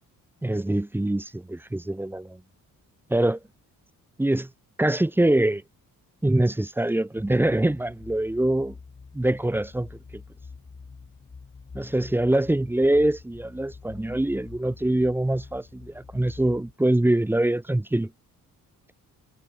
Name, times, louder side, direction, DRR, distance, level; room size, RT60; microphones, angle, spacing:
voice 1, 0.4-2.4 3.1-3.4 4.2-4.5 4.8-5.6 6.2-8.7 9.1-9.9 11.7-18.1, right 1 dB, 5° right, 0.6 m, -24 dB
sound 1, 7.2-16.7, left 4 dB, 35° left, 6.9 m, -46 dB
cardioid pair, 105°, 34 cm